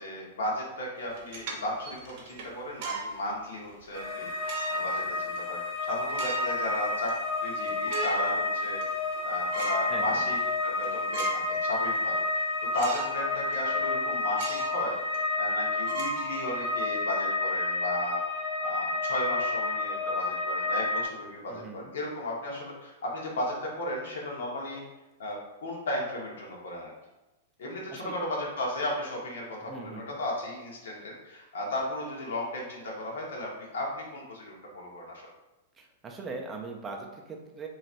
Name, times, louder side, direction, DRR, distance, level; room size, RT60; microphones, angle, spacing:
voice 1, 0.0-7.1 7.4-8.8 9.2-10.4 10.6-12.5 12.7-14.9 15.3-24.8 25.2-26.9 27.6-35.2, left 1 dB, 85° left, -2 dB, 1.2 m, -35 dB
sound 1, 1.1-3.1 3.7-3.8 4.4-5.0 5.4-5.5 6.0-6.7 7.1-7.2 7.5-8.3 8.7-9.2 9.5-9.9 10.3-10.5 10.8-11.6 11.9-12.0 12.7-13.2 13.5-13.6 14.3-14.8 15.1-15.2 15.8-16.8, right 4 dB, 45° right, 0.7 m, -37 dB
sound 2, 3.9-21.1, left 3 dB, 40° left, 0.9 m, -30 dB
voice 2, 9.9-10.2 21.5-21.9 27.9-28.1 29.6-30.2 35.8-37.7, right 3 dB, 15° right, 2 dB, 0.3 m, -40 dB
4.2 x 3.0 x 2.5 m, 1.0 s
supercardioid pair, 170°, 0 cm